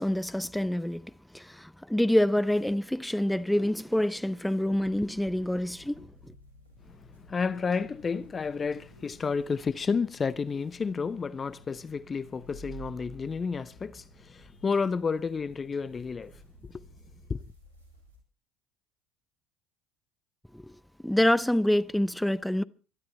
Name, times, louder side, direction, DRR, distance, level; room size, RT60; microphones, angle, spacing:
voice 1, 0.0-6.1 20.5-20.7 21.0-22.6, left 1 dB, 5° left, 0.9 m, -27 dB
sound 1, 4.6-18.2, right 1 dB, 90° right, 6.0 m, -53 dB
voice 2, 6.8-16.9 17.3-17.5, left 5 dB, 30° left, 0.8 m, -31 dB
22.5 x 12.5 x 4.4 m
hypercardioid pair, 65°, 0 cm